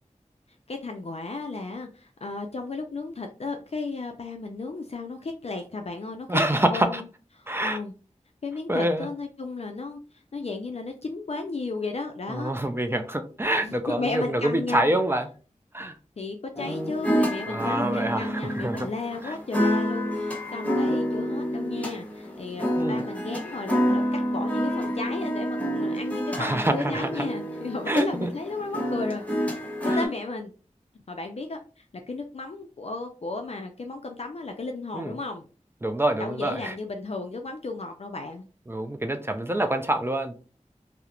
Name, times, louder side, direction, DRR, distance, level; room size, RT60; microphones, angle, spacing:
voice 1, 0.7-6.4 6.7-7.0 7.6-7.9 8.4-10.0 10.3-12.5 13.6-14.9 16.2-29.2 30.0-30.5 31.1-35.4 36.2-38.4, left 3 dB, 55° left, 4 dB, 0.4 m, -34 dB
voice 2, 6.3-7.0 7.5-7.8 8.7-9.1 12.3-15.3 15.7-16.0 17.5-18.9 19.2-19.4 22.8-23.1 26.4-27.3 27.9-28.3 29.9-30.1 34.9-35.2 35.8-36.8 38.7-40.4, right 1 dB, 20° right, 7 dB, 0.3 m, -26 dB
sound 1, 16.6-30.1, equal, 10° left, 0.8 m, -28 dB
2.4 x 2.0 x 2.8 m, 0.36 s
wide cardioid pair, 60°, 13 cm